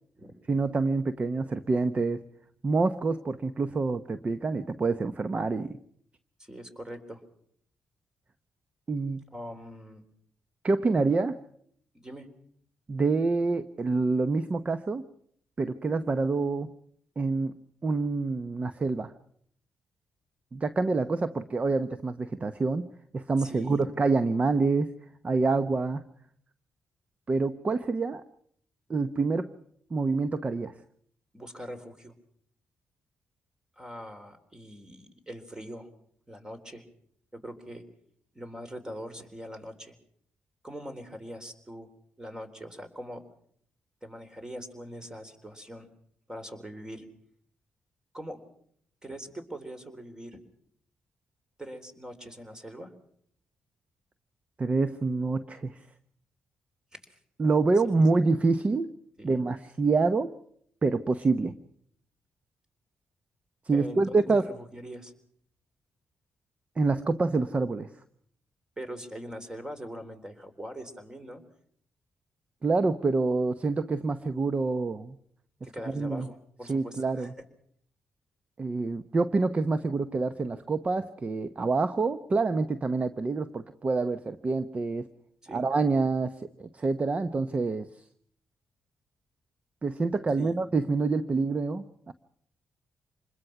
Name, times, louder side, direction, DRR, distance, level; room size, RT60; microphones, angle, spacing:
voice 1, 0.5-2.2 2.6-5.8 8.9-9.2 10.6-11.4 12.9-15.1 15.6-16.7 17.2-17.6 17.8-19.1 20.5-22.9 23.1-24.9 25.2-26.1 27.3-28.2 28.9-29.5 29.9-30.7 54.6-55.8 57.4-58.9 59.2-60.4 60.8-61.6 63.7-64.5 66.8-67.9 72.6-75.2 75.9-76.3 76.7-77.3 78.6-85.1 85.5-87.9 89.8-92.1, right 3 dB, 35° right, 12 dB, 1.0 m, -27 dB
voice 2, 6.4-7.2 9.3-10.0 11.9-12.3 23.4-23.9 31.3-32.1 33.8-35.9 36.3-36.9 37.3-37.8 38.3-40.0 40.6-41.9 42.2-43.2 44.0-45.9 46.3-47.1 48.1-48.4 49.0-50.4 51.6-52.9 56.9-57.2 57.7-58.2 59.2-59.4 63.7-65.1 68.8-71.4 75.6-77.5 85.4-85.6 90.4-90.6, equal, 15° right, 8 dB, 3.8 m, -42 dB
26.5 x 21.0 x 5.9 m, 0.65 s
cardioid pair, 75°, 4 cm